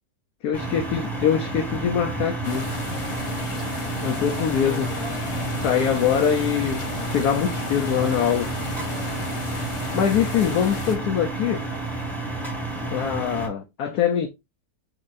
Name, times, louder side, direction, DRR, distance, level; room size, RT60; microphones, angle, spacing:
voice 1, 0.4-2.7 4.0-4.9 5.4-8.5 9.9-11.7 12.9-14.3, left 8 dB, 70° left, 1.2 m, -23 dB
sound 1, 0.5-13.5, right 2 dB, ahead, 1.2 m, -31 dB
sound 2, 2.4-11.0, left 3 dB, 40° left, 0.4 m, -33 dB
6.4 x 2.9 x 2.5 m
omnidirectional pair, 1.7 m